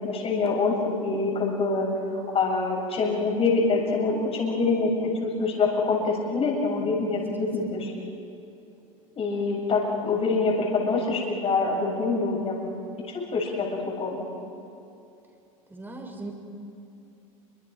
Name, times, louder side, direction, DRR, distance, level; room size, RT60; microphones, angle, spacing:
voice 1, 0.0-1.9 2.3-7.9 9.2-12.7 13.1-14.3, left 3 dB, 35° left, -1 dB, 7.4 m, -25 dB
voice 2, 7.4-8.0 15.7-16.3, right 2 dB, 10° right, 1 dB, 6.4 m, -40 dB
29.5 x 26.0 x 5.2 m, 2.7 s
hypercardioid pair, 85°, 18 cm